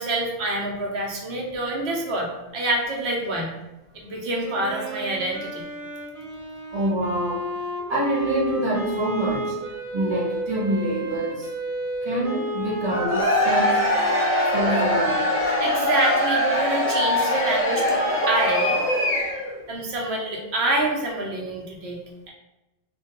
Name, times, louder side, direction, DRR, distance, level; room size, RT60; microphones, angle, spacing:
voice 1, 0.0-3.5 3.9-5.6 15.4-18.8 19.7-22.0, right 1 dB, 90° right, -1 dB, 0.9 m, -27 dB
Wind instrument woodwind instrument, 4.4-17.8, right 1 dB, 60° right, 0.9 m, -33 dB
voice 2, 6.7-7.4 7.9-9.6 9.9-11.5 12.0-13.8 14.5-15.2, right 1 dB, 30° right, -5 dB, 0.7 m, -26 dB
Cheering / Crowd, 12.8-19.6, left 1 dB, 20° left, 0.3 m, -22 dB
2.2 x 2.1 x 2.9 m, 0.99 s
omnidirectional pair, 1.0 m